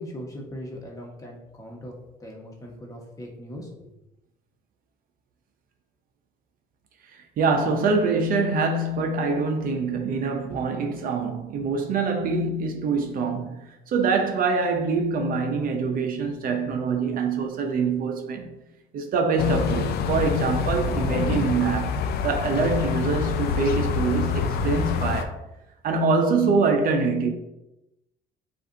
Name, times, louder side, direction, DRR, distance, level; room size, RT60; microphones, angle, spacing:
voice 1, 0.0-3.9, equal, 20° left, 1.2 m, -39 dB
voice 2, 7.1-18.5 18.9-22.0 22.2-25.4 25.8-27.3, right 4 dB, 60° right, 0.6 m, -24 dB
sound 1, 19.4-25.2, left 5 dB, 70° left, 0.5 m, -26 dB
7.6 x 2.6 x 2.6 m
cardioid pair, 110°, 17 cm